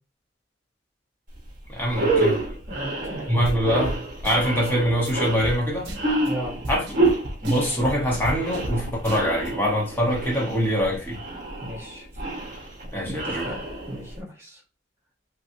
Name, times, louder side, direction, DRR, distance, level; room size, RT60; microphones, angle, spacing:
sound 1, 1.3-1.5 1.8-14.2, right 2 dB, 45° right, 1.2 m, -28 dB
voice 1, 1.7-2.4 3.3-5.9 6.7-6.8 7.4-11.2 12.9-13.5, equal, 10° left, 0.9 m, -24 dB
voice 2, 2.7-3.3 6.2-6.6 11.6-12.1 13.0-14.6, right 1 dB, 15° right, 1.0 m, -36 dB
sound 2, 3.4-3.6 3.8-4.0 4.2-4.7 5.0-5.1 5.4-5.6 5.8-6.3 6.6-8.8 9.0-9.5, equal, 65° right, 0.8 m, -33 dB
3.1 x 2.9 x 2.6 m
head